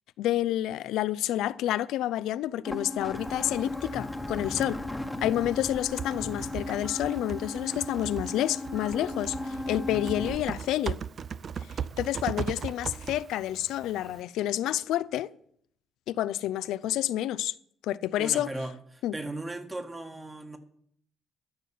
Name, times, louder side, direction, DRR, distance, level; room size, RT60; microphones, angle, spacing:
voice 1, 0.2-4.8 5.2-11.0 12.0-15.3 16.1-17.5 17.8-18.5 19.0-19.1, left 13 dB, 90° left, 0.4 m, -29 dB
sound 1, 2.6-10.4, left 1 dB, 10° left, 1.1 m, -36 dB
Typing, 3.2-14.2, right 7 dB, 50° right, 0.4 m, -39 dB
voice 2, 18.2-20.6, right 2 dB, 20° right, 1.6 m, -37 dB
13.0 x 5.6 x 7.5 m
cardioid pair, 90°, 0 cm